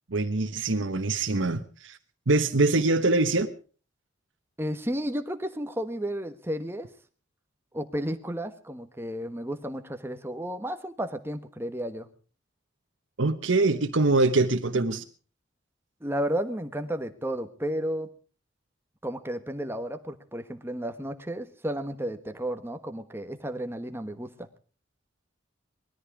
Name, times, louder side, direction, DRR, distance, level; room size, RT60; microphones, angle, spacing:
voice 1, 0.1-2.0 2.3-3.5 13.2-15.0, right 3 dB, 80° right, 1.1 m, -24 dB
voice 2, 4.6-6.9 7.7-12.1 16.0-18.1 19.0-24.5, equal, 10° right, 1.3 m, -33 dB
20.0 x 13.5 x 4.8 m
head